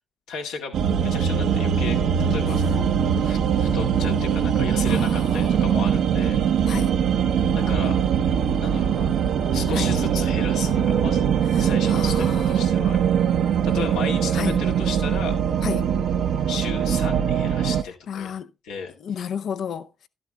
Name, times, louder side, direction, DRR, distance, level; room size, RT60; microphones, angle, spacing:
voice 1, 0.3-2.9 3.2-6.7 7.5-8.0 8.6-9.1 9.5-11.3 11.6-13.0 13.6-15.4 16.5-18.3 18.6-18.9, left 5 dB, 85° left, 1.9 m, -34 dB
sound 1, 0.7-17.8, right 8 dB, 75° right, 0.8 m, -22 dB
voice 2, 4.9-5.5 6.7-7.0 9.7-9.9 11.5-12.6 14.3-14.6 15.6-15.9 18.1-18.5 19.0-20.1, left 8 dB, 65° left, 0.6 m, -32 dB
12.5 x 11.5 x 2.3 m
supercardioid pair, 55°, 0 cm